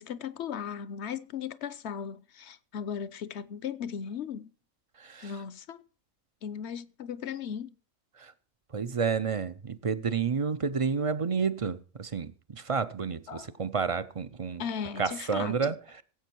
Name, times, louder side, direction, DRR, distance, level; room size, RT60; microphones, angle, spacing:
voice 1, 0.0-4.5 5.2-5.8 6.4-7.7 13.3-13.5 14.6-15.8, left 7 dB, 60° left, 0.9 m, -37 dB
voice 2, 8.7-14.6 15.0-15.8, right 5 dB, 40° right, 0.5 m, -30 dB
16.0 x 7.9 x 4.5 m
omnidirectional pair, 1.4 m